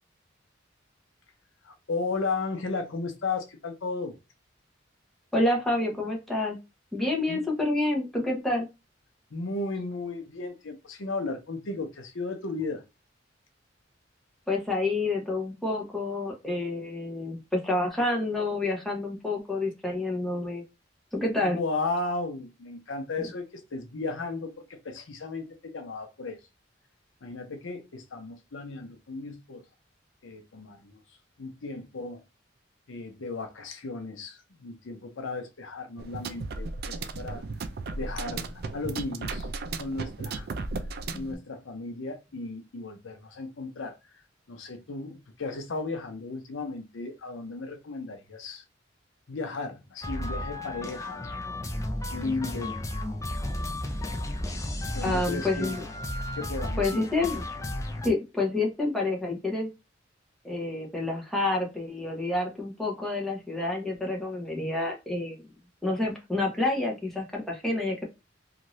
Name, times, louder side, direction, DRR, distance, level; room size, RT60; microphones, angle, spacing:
voice 1, 1.6-4.2 7.3-7.4 9.3-12.8 21.4-26.4 27.2-29.6 30.2-31.0 31.4-32.2 32.9-37.4 37.9-39.5 39.8-40.5 41.1-44.2 44.5-48.6 49.3-51.4 52.1-52.8 54.9-55.8 56.4-57.1, left 3 dB, 85° left, 0.7 m, -35 dB
voice 2, 5.3-6.6 6.9-8.7 14.5-20.6 21.1-21.6 41.1-41.4 55.0-55.8 56.8-57.4 58.0-59.7 60.4-65.5 65.8-68.1, left 2 dB, ahead, 0.8 m, -28 dB
sound 1, 36.0-41.4, right 3 dB, 55° right, 0.4 m, -35 dB
sound 2, 50.0-58.1, left 1 dB, 15° left, 0.4 m, -33 dB
2.6 x 2.5 x 3.1 m
head